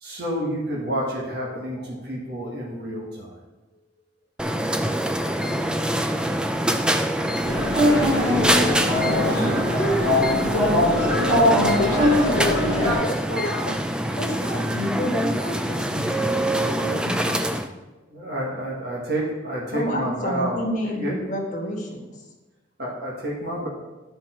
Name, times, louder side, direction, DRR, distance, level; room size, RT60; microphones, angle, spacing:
voice 1, 0.0-3.3 9.6-9.7 18.1-21.1 22.8-23.7, right 1 dB, 55° right, -4 dB, 1.5 m, -29 dB
sound 1, 4.4-17.7, right 1 dB, 5° right, 0.3 m, -25 dB
sound 2, 7.4-12.9, left 1 dB, 30° right, 2.4 m, -21 dB
voice 2, 9.4-11.1 14.2-17.3 19.7-22.0, left 1 dB, 40° left, -1 dB, 1.5 m, -30 dB
voice 3, 11.1-13.8, left 1 dB, 70° left, 2 dB, 1.0 m, -29 dB
11.0 x 4.5 x 4.4 m, 1.1 s
head